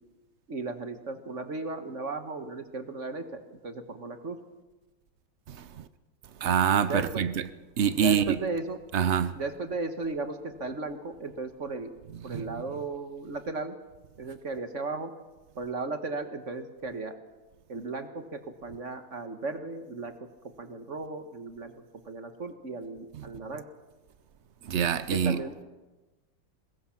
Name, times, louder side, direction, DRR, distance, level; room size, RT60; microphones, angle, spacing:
voice 1, 0.5-4.4 6.9-7.3 7.9-8.8 9.3-11.9 12.2-13.8 14.2-15.1 15.6-17.2 17.7-20.1 20.6-21.7 22.1-23.6 25.1-25.6, right 3 dB, 45° right, 1.4 m, -35 dB
voice 2, 6.4-7.3 7.8-8.4 8.9-9.3 12.3-12.4 23.2-23.3 24.7-25.4, right 8 dB, 65° right, 0.7 m, -25 dB
22.0 x 20.5 x 5.8 m
omnidirectional pair, 2.1 m